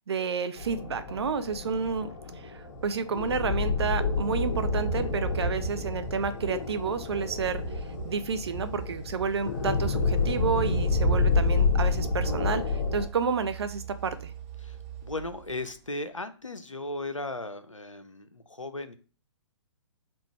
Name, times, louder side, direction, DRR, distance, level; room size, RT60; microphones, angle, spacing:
voice 1, 0.1-2.1 2.4-7.6 8.0-14.3, right 5 dB, 60° right, 11 dB, 0.6 m, -30 dB
sound 1, 0.6-13.1, left 3 dB, 50° left, 1.1 m, -29 dB
sound 2, 2.1-16.2, right 10 dB, 25° right, 0.8 m, -47 dB
voice 2, 14.6-18.9, left 2 dB, 90° left, 12 dB, 0.6 m, -37 dB
3.8 x 2.4 x 4.6 m, 0.38 s
figure-of-eight pair, 120°, 16 cm